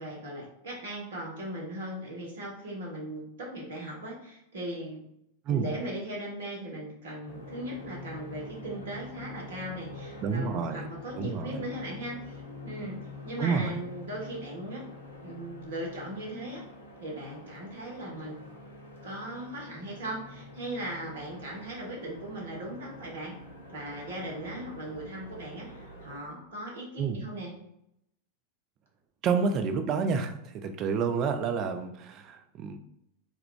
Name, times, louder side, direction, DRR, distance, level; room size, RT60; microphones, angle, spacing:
voice 1, 0.0-5.0 5.5-14.8 15.2-16.7 17.0-18.4 19.0-23.4 23.7-27.5, right 1 dB, 60° right, -2 dB, 0.9 m, -38 dB
sound 1, 7.3-26.2, left 2 dB, 70° left, 0.5 m, -46 dB
voice 2, 10.2-10.9 11.2-11.6 13.4-13.8 27.0-27.2 29.2-32.8, right 5 dB, 35° right, 7 dB, 0.3 m, -29 dB
2.2 x 2.2 x 3.6 m, 0.78 s
figure-of-eight pair, 90°, 0 cm